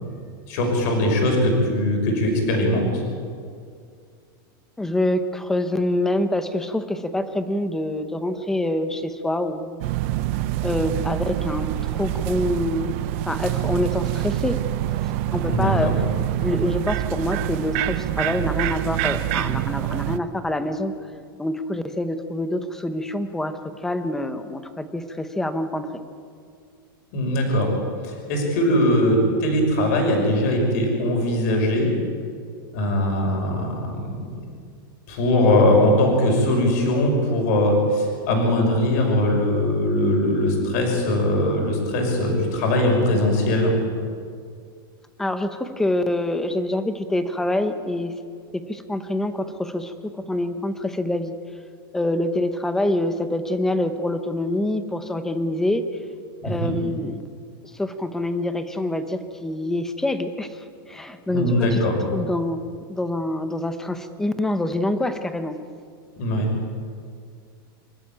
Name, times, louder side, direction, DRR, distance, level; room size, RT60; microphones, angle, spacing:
voice 1, 0.5-3.0 15.5-16.0 27.1-27.7 28.0-31.9 32.7-34.3 35.1-43.7 56.4-56.8 61.3-62.0 66.2-66.5, left 1 dB, 45° left, 1 dB, 5.8 m, -21 dB
voice 2, 4.8-9.8 10.6-12.9 13.2-14.6 14.9-15.9 16.4-21.0 21.4-25.9 45.2-48.1 48.5-51.3 51.9-55.8 56.4-57.3 57.7-60.6 60.9-61.8 62.1-62.6 62.9-65.6, left 1 dB, 5° left, 9 dB, 0.8 m, -26 dB
sound 1, 9.8-20.2, right 14 dB, 35° right, 0.6 m, -26 dB
26.5 x 13.0 x 9.0 m, 2.2 s
supercardioid pair, 175°, 12 cm